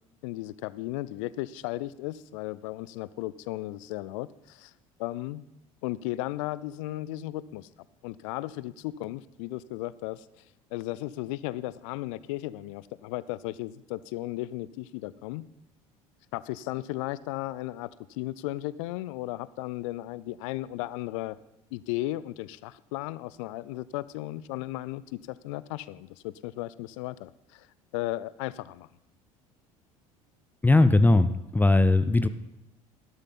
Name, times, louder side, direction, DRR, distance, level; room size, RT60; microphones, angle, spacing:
voice 1, 0.2-4.7 5.0-5.4 5.8-7.7 8.0-10.3 10.7-15.4 16.3-21.4 21.7-27.7 27.9-28.9, left 16 dB, 60° left, 19 dB, 0.5 m, -35 dB
voice 2, 30.6-32.3, left 2 dB, 10° left, 12 dB, 0.6 m, -19 dB
12.5 x 11.5 x 4.1 m, 0.85 s
figure-of-eight pair, 65°, 18 cm